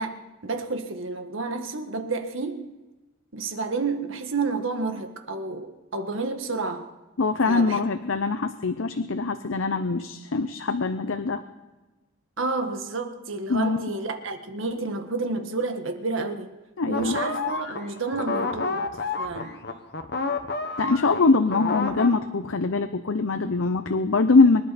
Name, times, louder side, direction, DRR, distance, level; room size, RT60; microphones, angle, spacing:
voice 1, 0.0-2.7 3.3-6.9 7.4-7.8 12.4-16.5 16.9-18.9 19.2-19.6, right 3 dB, 75° right, 6 dB, 1.6 m, -30 dB
voice 2, 7.2-11.4 13.5-13.8 16.8-17.2 20.8-24.6, left 3 dB, 80° left, 9 dB, 0.7 m, -23 dB
sound 1, 16.9-22.1, left 4 dB, 55° left, 1.3 m, -29 dB
24.5 x 11.5 x 4.3 m, 1.1 s
head